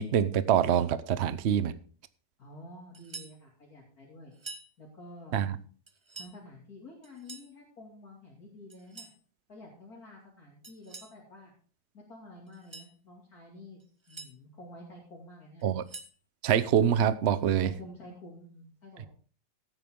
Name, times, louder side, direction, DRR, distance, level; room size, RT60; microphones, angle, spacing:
voice 1, 0.0-1.7 5.3-5.6 15.6-15.8 16.4-17.7, right 9 dB, 55° right, 0.7 m, -25 dB
voice 2, 2.4-4.3 4.8-5.5 6.1-9.1 9.5-11.5 11.9-13.8 14.1-15.6 17.6-19.1, left 1 dB, 50° left, 3.1 m, -49 dB
sound 1, 2.9-3.4 4.3-4.7 5.9-6.4 7.0-7.5 8.7-9.2 10.6-11.2 12.5-12.9 13.8-14.3 15.6-16.2, right 3 dB, 20° right, 0.7 m, -46 dB
15.5 x 9.0 x 3.7 m
omnidirectional pair, 2.0 m